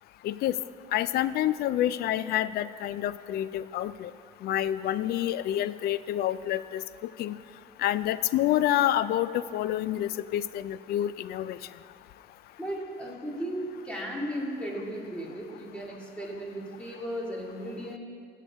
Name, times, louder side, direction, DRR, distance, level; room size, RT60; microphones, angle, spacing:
voice 1, 0.2-0.6 0.9-4.1 4.4-6.8 7.2-7.4 7.8-11.6, left 12 dB, 65° left, 15 dB, 0.4 m, -28 dB
voice 2, 12.6-18.0, equal, 5° left, -3 dB, 2.3 m, -35 dB
17.5 x 6.7 x 3.6 m, 2.4 s
cardioid pair, 110°, 17 cm